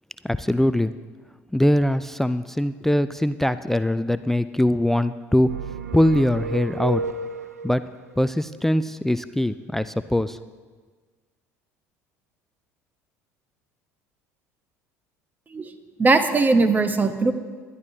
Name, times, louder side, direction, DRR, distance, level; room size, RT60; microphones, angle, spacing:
voice 1, 0.2-0.9 1.5-5.5 5.9-7.0 7.6-7.8 8.2-10.4, left 1 dB, 5° left, 15 dB, 0.3 m, -22 dB
sound 1, 5.4-7.8, right 4 dB, 80° right, 0.4 m, -32 dB
voice 2, 16.0-17.3, right 3 dB, 20° right, 10 dB, 0.9 m, -19 dB
20.0 x 11.0 x 2.8 m, 1.5 s
figure-of-eight pair, 65°, 8 cm